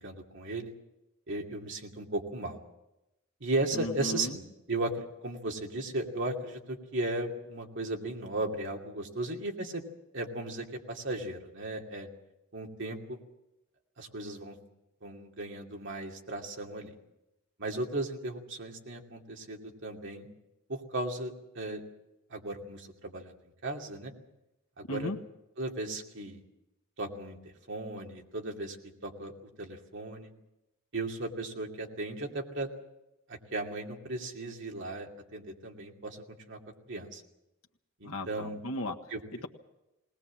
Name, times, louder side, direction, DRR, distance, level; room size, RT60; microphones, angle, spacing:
voice 1, 0.0-0.7 1.3-2.6 3.4-9.8 10.1-12.1 12.5-13.2 14.0-14.6 15.0-16.9 17.6-20.3 20.7-21.8 22.3-23.3 23.6-24.1 24.8-25.1 25.6-26.4 27.0-28.8 29.0-30.3 30.9-32.7 33.3-36.6 36.9-37.2 38.0-38.6 39.1-39.2, right 2 dB, 60° right, 1 dB, 2.6 m, -36 dB
voice 2, 3.7-4.4 24.9-25.2 38.0-39.0 39.3-39.5, left 1 dB, 80° left, 3 dB, 1.5 m, -36 dB
20.0 x 20.0 x 7.5 m, 0.93 s
head